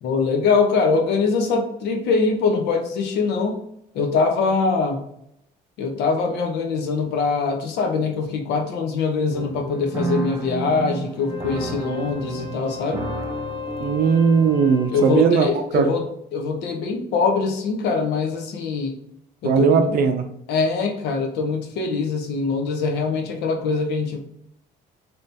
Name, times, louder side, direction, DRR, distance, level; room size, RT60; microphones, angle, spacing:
voice 1, 0.0-3.6 3.9-5.0 5.8-13.0 14.9-16.0 16.3-18.9 19.4-19.9 20.5-24.2, left 4 dB, 80° left, 4 dB, 0.8 m, -23 dB
sound 1, 9.3-14.9, right 3 dB, 15° right, 0.6 m, -31 dB
Wind instrument woodwind instrument, 11.2-15.4, left 7 dB, 30° left, 0.6 m, -36 dB
voice 2, 13.8-16.0 19.4-20.3, right 6 dB, 60° right, 6 dB, 0.5 m, -18 dB
3.2 x 3.0 x 2.7 m, 0.77 s
cardioid pair, 110°, 17 cm